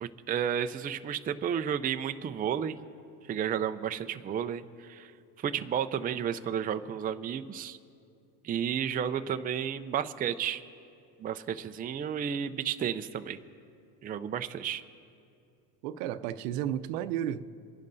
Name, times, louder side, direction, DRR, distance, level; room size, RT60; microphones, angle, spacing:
voice 1, 0.0-2.8 3.3-5.1 5.4-7.8 8.4-10.6 11.2-13.4 14.0-14.8, right 8 dB, 20° right, 0.4 m, -32 dB
voice 2, 15.8-17.4, right 11 dB, 85° right, 0.7 m, -32 dB
28.0 x 11.0 x 2.6 m
supercardioid pair, 100°, 46 cm